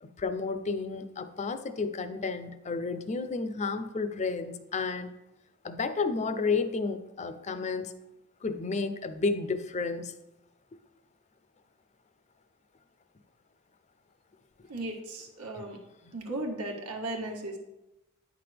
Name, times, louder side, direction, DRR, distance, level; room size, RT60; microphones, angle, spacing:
voice 1, 0.0-5.1 5.6-7.9 8.4-10.1 15.6-15.7, left 4 dB, 30° left, 10 dB, 0.4 m, -31 dB
voice 2, 14.7-15.8 16.1-17.6, right 2 dB, 85° right, 1 dB, 1.3 m, -36 dB
9.1 x 5.8 x 3.3 m, 0.94 s
head